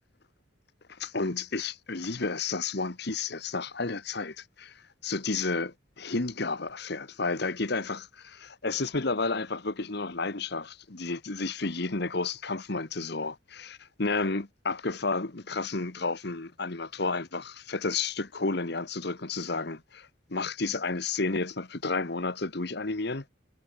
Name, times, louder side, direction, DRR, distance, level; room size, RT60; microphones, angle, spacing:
voice 1, 0.9-23.2, left 3 dB, 55° left, 1.3 m, -31 dB
head